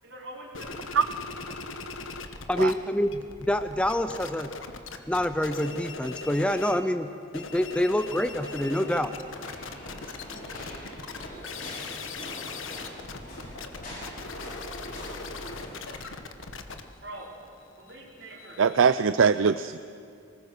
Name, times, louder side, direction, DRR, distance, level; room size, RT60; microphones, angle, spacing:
voice 1, 0.0-0.9 15.8-16.1 17.0-17.3 17.7-18.6, right 1 dB, 60° right, -3 dB, 5.0 m, -44 dB
sound 1, 0.5-2.7 3.0-6.8 7.2-18.8, left 4 dB, 80° left, 1.3 m, -40 dB
voice 2, 2.5-4.5 5.1-7.1 7.3-9.1, left 1 dB, 5° left, 10 dB, 0.5 m, -26 dB
sound 2, 8.2-15.8, equal, 45° left, 6.1 m, -43 dB
voice 3, 18.6-19.8, right 6 dB, 80° right, 12 dB, 0.5 m, -21 dB
24.0 x 19.5 x 6.6 m, 2.3 s
head